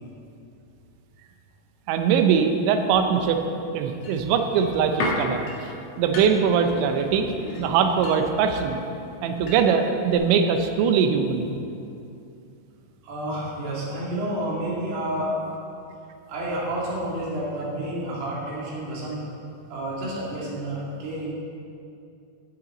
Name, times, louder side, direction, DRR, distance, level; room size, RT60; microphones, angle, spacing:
voice 1, 1.9-3.4 3.7-5.7 6.0-8.8 9.2-11.5, right 6 dB, 85° right, 6 dB, 3.2 m, -22 dB
sound 1, 4.0-9.9 10.1-10.2, left 2 dB, 55° left, 2.0 m, -35 dB
voice 2, 13.0-15.3 16.3-19.2 19.7-21.3, right 1 dB, 65° right, -6 dB, 4.6 m, -30 dB
16.5 x 8.8 x 3.9 m, 2.6 s
omnidirectional pair, 5.2 m